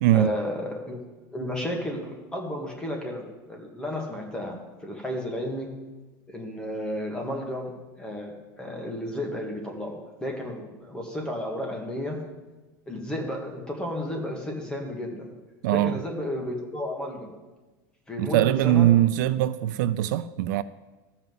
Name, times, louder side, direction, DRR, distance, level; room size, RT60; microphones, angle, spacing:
voice 1, 0.1-1.0 1.3-5.7 6.3-7.7 8.0-12.2 12.9-15.3 15.7-17.3 18.1-18.9, left 1 dB, 10° left, 1.8 m, -32 dB
voice 2, 15.6-16.0 18.2-20.6, right 13 dB, 75° right, 0.5 m, -21 dB
13.5 x 5.7 x 7.8 m
supercardioid pair, 165°, 10 cm